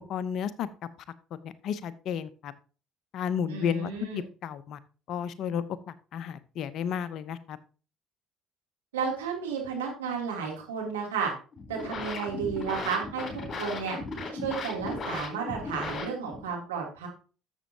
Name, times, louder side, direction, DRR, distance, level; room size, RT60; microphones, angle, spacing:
voice 1, 0.1-0.7 1.4-2.5 3.1-4.8 5.1-7.6, left 8 dB, 60° left, 15 dB, 0.8 m, -32 dB
voice 2, 3.5-4.2 8.9-11.3 11.7-13.2 13.6-14.0 14.4-17.1, right 6 dB, 85° right, -1 dB, 3.0 m, -32 dB
sound 1, 11.5-16.5, left 3 dB, 40° left, 4.1 m, -36 dB
12.0 x 7.3 x 2.9 m, 0.36 s
hypercardioid pair, 55°, 0 cm